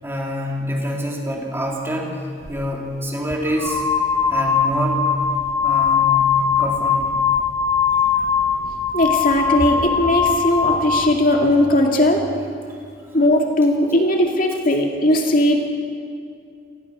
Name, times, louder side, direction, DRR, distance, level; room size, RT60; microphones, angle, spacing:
voice 1, 0.0-2.2 2.5-3.8 4.3-5.0 5.6-6.1 6.6-7.1 8.1-8.2 12.7-12.8, equal, 15° right, -2 dB, 3.3 m, -26 dB
sound 1, 2.5-2.6 3.4-11.2, left 6 dB, 20° left, 1.4 m, -20 dB
voice 2, 8.9-12.2 13.1-15.7, left 1 dB, 45° left, 1 dB, 2.3 m, -18 dB
29.5 x 19.0 x 6.2 m, 2.4 s
head